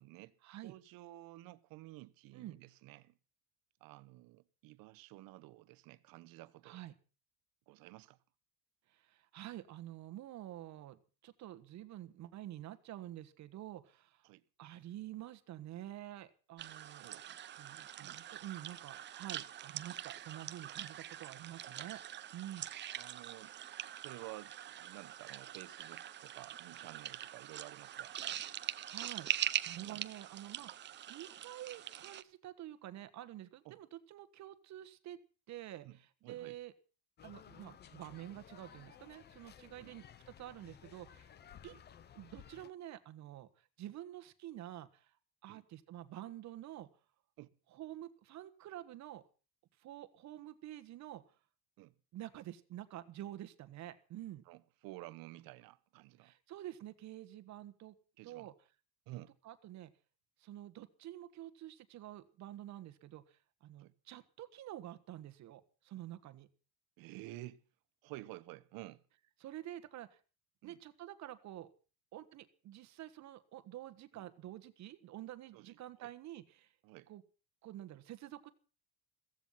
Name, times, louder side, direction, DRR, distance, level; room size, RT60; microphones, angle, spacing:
voice 1, 0.0-0.3 0.6-3.2 3.8-6.8 7.7-8.2 14.2-14.4 17.0-17.2 18.0-18.2 23.0-23.5 24.0-28.2 29.8-30.0 33.6-33.8 35.8-36.6 39.8-39.9 41.6-41.8 45.5-45.6 47.4-47.5 51.8-51.9 54.5-56.3 58.2-58.5 59.1-59.4 63.8-63.9 67.0-67.6 68.0-69.0 70.6-70.8 74.1-74.3 75.5-76.1 76.8-77.1, right 18 dB, 65° right, 1.1 m, -52 dB
voice 2, 8.9-14.3 14.6-17.1 17.6-22.0 22.3-22.7 28.9-35.2 35.5-35.9 36.3-36.7 37.2-41.3 41.6-41.7 42.1-45.1 45.4-46.9 47.7-49.2 49.8-51.2 52.1-54.4 56.2-57.9 58.2-58.5 59.4-59.9 60.4-66.5 69.4-70.2 70.6-71.7 72.1-76.7 77.1-77.2 77.6-78.5, right 13 dB, 45° right, 1.4 m, -48 dB
sound 1, 16.6-32.2, right 11 dB, 30° right, 0.7 m, -43 dB
sound 2, 37.2-42.7, left 9 dB, 30° left, 0.7 m, -57 dB
15.5 x 15.0 x 5.7 m
cardioid pair, 165°, 37 cm